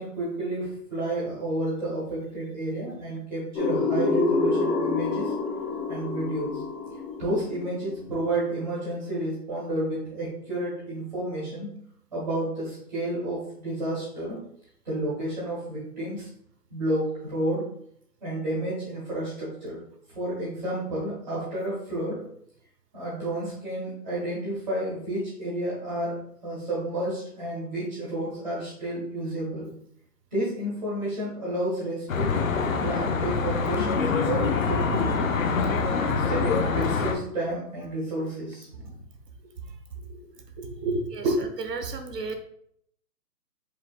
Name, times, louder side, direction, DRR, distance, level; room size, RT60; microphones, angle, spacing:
voice 1, 0.0-5.3 5.9-6.6 7.2-11.8 12.1-14.4 14.8-16.3 16.7-17.7 18.2-19.8 20.1-22.2 22.9-29.7 30.3-35.3 35.9-39.0 40.1-40.3 40.6-41.4, right 1 dB, 30° right, -9 dB, 1.4 m, -31 dB
sound 1, 3.6-8.3, left 4 dB, 80° left, 1.0 m, -27 dB
Traffic noise roadway noise, 32.1-37.1, left 5 dB, 60° left, 0.5 m, -25 dB
voice 2, 41.1-42.4, right 4 dB, 85° right, 6 dB, 1.0 m, -34 dB
4.9 x 3.6 x 2.3 m, 0.66 s
hypercardioid pair, 180°, 47 cm